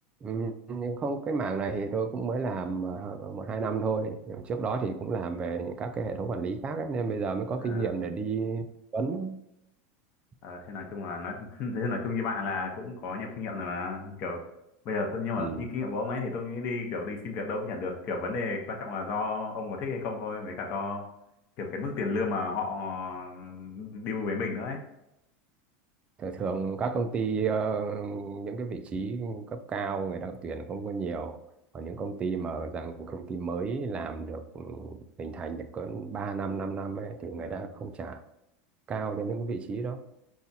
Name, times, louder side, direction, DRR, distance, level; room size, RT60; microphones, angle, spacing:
voice 1, 0.2-8.7 8.9-9.4 15.4-15.7 26.2-31.4 31.7-38.2 38.9-40.0, right 4 dB, 15° right, 8 dB, 0.3 m, -32 dB
voice 2, 7.6-7.9 10.4-14.4 14.8-21.1 21.6-24.8 37.4-37.7, left 4 dB, 35° left, 1 dB, 0.8 m, -33 dB
5.5 x 2.4 x 4.0 m, 0.84 s
supercardioid pair, 165°, 6 cm